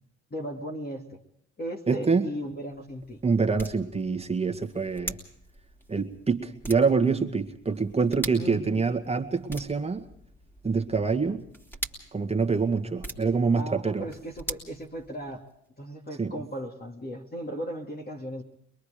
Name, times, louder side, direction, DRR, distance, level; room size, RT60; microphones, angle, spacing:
voice 1, 0.3-1.2 1.6-3.2 8.4-8.8 13.5-15.5 15.8-18.4, equal, 30° left, 1 dB, 2.4 m, -37 dB
voice 2, 1.9-2.3 3.2-5.2 5.9-10.0 10.6-11.4 12.1-14.1 16.2-16.4, right 4 dB, 20° right, 4 dB, 1.9 m, -26 dB
Highlighter (Manipulation), 2.3-15.6, right 1 dB, 5° left, 2.9 m, -43 dB
23.5 x 22.0 x 5.1 m, 0.70 s
cardioid pair, 95°, 32 cm